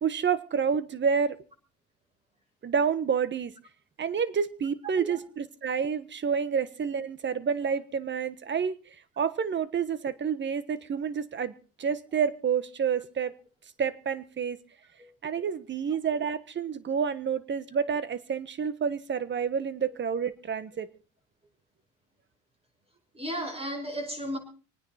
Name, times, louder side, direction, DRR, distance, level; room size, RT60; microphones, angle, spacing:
voice 1, 0.0-1.4 2.6-3.5 4.0-8.8 9.2-11.5 11.8-13.3 13.8-14.6 15.2-20.9, right 7 dB, 35° right, 1.4 m, -29 dB
voice 2, 23.1-24.4, equal, 15° right, 5.6 m, -34 dB
26.5 x 9.6 x 4.2 m
supercardioid pair, 95°, 34 cm